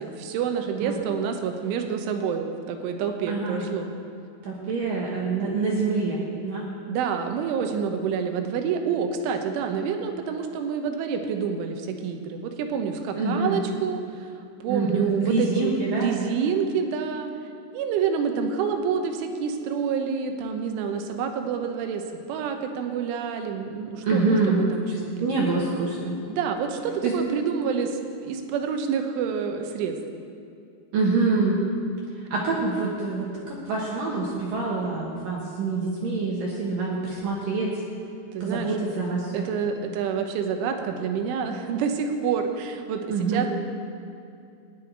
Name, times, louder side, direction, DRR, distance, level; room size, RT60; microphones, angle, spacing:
voice 1, 0.0-3.9 6.9-14.3 14.6-17.3 17.7-25.5 26.3-30.0 38.3-38.8 39.3-43.5, right 6 dB, 80° right, 5 dB, 3.4 m, -28 dB
voice 2, 3.3-3.6 4.5-6.7 13.2-13.6 14.7-16.1 24.0-24.6 25.2-26.2 27.0-27.1 30.9-31.6 32.3-37.8 38.4-39.4 43.1-43.5, right 3 dB, 65° right, -4 dB, 2.4 m, -26 dB
16.5 x 5.7 x 10.0 m, 2.5 s
omnidirectional pair, 5.6 m